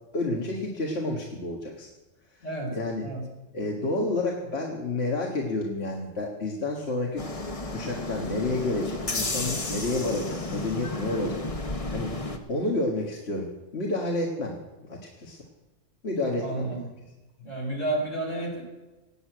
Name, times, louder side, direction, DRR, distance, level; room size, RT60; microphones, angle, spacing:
voice 1, 0.1-1.9 2.7-3.0 3.5-7.3 7.7-12.1 12.5-14.6 14.9-15.4 16.0-16.7, left 2 dB, 50° left, -1 dB, 1.8 m, -30 dB
voice 2, 2.4-3.2 11.4-11.5 16.4-16.9 17.4-18.6, right 2 dB, 65° left, -1 dB, 4.3 m, -31 dB
sound 1, 7.2-12.4, left 2 dB, 30° left, 1.3 m, -32 dB
17.5 x 6.5 x 9.0 m, 1.1 s
omnidirectional pair, 1.4 m